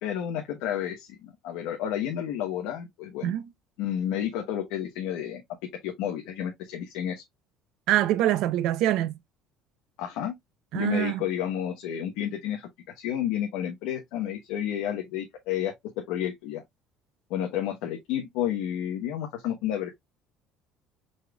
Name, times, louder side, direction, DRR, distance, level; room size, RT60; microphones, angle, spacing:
voice 1, 0.0-3.3 3.8-5.4 5.8-7.2 10.0-10.3 10.7-12.7 13.0-16.6 17.3-20.0, left 10 dB, 80° left, 0.9 m, -31 dB
voice 2, 7.9-9.2 10.7-11.2, right 13 dB, 60° right, 0.6 m, -24 dB
5.0 x 4.1 x 2.3 m
cardioid pair, 165°, 0 cm